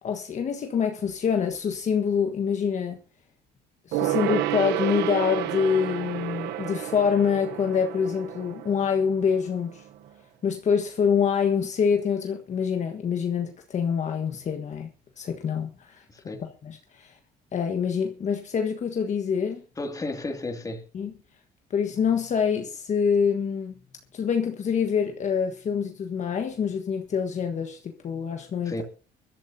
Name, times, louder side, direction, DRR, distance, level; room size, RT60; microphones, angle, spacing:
voice 1, 0.0-3.0 3.9-9.8 10.4-14.9 15.2-16.0 16.4-17.2 17.5-19.6 20.9-21.1 21.7-23.7 24.1-28.8, left 7 dB, 45° left, 1.4 m, -26 dB
Gong, 3.9-9.8 10.1-10.2, right 13 dB, 85° right, 0.9 m, -30 dB
voice 2, 16.1-16.4 19.8-20.8 28.7-28.8, left 2 dB, 20° left, 2.5 m, -33 dB
24.0 x 12.5 x 2.8 m
cardioid pair, 110°, 17 cm